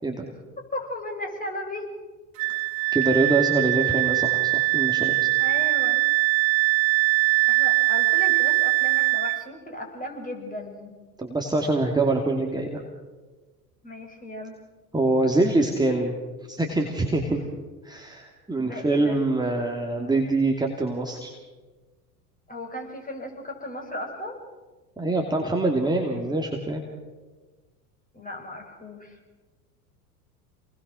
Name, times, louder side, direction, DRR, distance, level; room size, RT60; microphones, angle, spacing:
voice 1, 0.7-1.9 5.4-6.0 7.5-11.0 13.8-14.6 17.3-17.4 18.6-19.2 22.5-24.4 28.1-29.2, left 1 dB, 15° left, 2 dB, 6.7 m, -36 dB
Wind instrument woodwind instrument, 2.4-9.4, right 27 dB, 60° right, 0.8 m, -22 dB
voice 2, 2.9-5.1 11.2-12.8 14.9-16.2 16.5-17.4 17.8-21.3 25.0-26.8, right 2 dB, 10° right, 1 dB, 2.7 m, -24 dB
28.0 x 20.5 x 6.4 m, 1.3 s
figure-of-eight pair, 80°, 47 cm